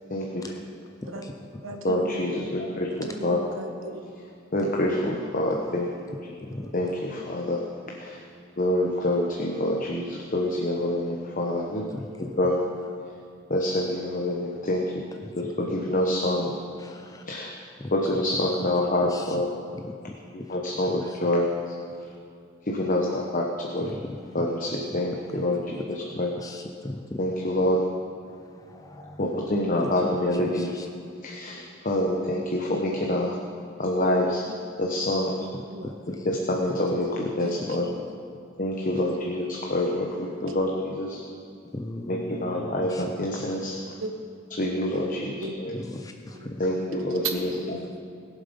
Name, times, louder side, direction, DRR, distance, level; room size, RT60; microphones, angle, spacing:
voice 1, 0.1-0.4 1.8-3.4 4.5-5.9 6.2-6.3 6.7-8.2 8.6-11.8 12.4-12.6 13.5-15.0 15.4-16.6 17.3-17.5 17.9-19.5 20.5-21.7 22.6-23.9 24.3-26.3 27.2-27.8 29.2-30.7 31.2-33.4 33.8-34.4 34.8-35.4 36.2-37.9 38.6-41.2 42.1-43.8 44.6-45.7 46.6-47.8, left 1 dB, 45° left, 0 dB, 1.2 m, -26 dB
voice 2, 1.0-1.9 6.4-6.7 11.9-12.4 15.2-15.4 16.8-17.2 17.8-17.9 19.0-19.4 19.7-20.5 21.0-21.2 23.9-24.4 26.1-27.2 28.3-29.5 29.8-30.9 35.8-36.3 37.8-37.9 38.9-39.0 41.7-43.1 45.7-46.6 47.5-47.6, left 1 dB, 20° left, 4 dB, 0.5 m, -39 dB
voice 3, 1.6-2.3 3.0-4.0 35.4-35.9 37.4-37.6 40.3-40.4 40.6-40.8 44.0-44.1 44.9-45.0 45.4-45.6 47.6-48.0, right 2 dB, 85° right, 5 dB, 1.4 m, -37 dB
20.5 x 7.5 x 5.4 m, 2.5 s
head